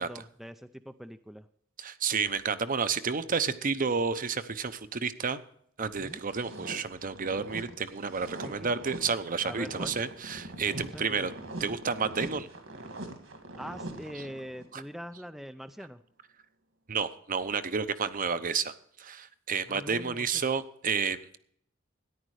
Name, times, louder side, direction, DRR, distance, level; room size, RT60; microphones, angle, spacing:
voice 1, 0.0-1.5 6.0-6.2 8.4-8.7 9.4-10.0 10.7-11.3 13.5-16.0 19.7-20.4, equal, ahead, 9 dB, 0.4 m, -43 dB
voice 2, 1.8-5.4 5.8-11.3 11.6-12.5 14.7-14.8 16.9-18.7 19.0-21.4, right 5 dB, 45° right, 12 dB, 0.8 m, -31 dB
sound 1, 6.1-14.7, right 1 dB, 70° right, 2.1 m, -43 dB
14.0 x 10.5 x 4.8 m, 0.65 s
head